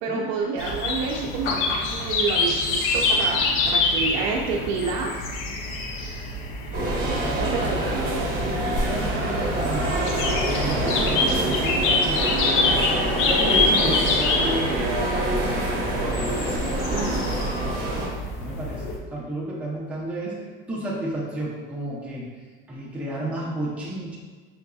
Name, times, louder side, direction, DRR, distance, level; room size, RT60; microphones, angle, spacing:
voice 1, 0.0-5.3 7.4-7.9 16.9-17.3, right 4 dB, 65° right, -2 dB, 0.5 m, -29 dB
sound 1, 0.6-19.0, left 3 dB, 45° left, 0.5 m, -26 dB
sound 2, 6.7-18.1, right 1 dB, 30° right, 1.0 m, -25 dB
voice 2, 8.4-10.0 10.6-12.8 13.2-14.9 17.6-17.8 18.4-20.4 20.7-22.3 22.7-24.2, right 1 dB, 5° right, -6 dB, 0.6 m, -31 dB
4.8 x 2.6 x 2.3 m, 1.5 s
cardioid pair, 140°, 29 cm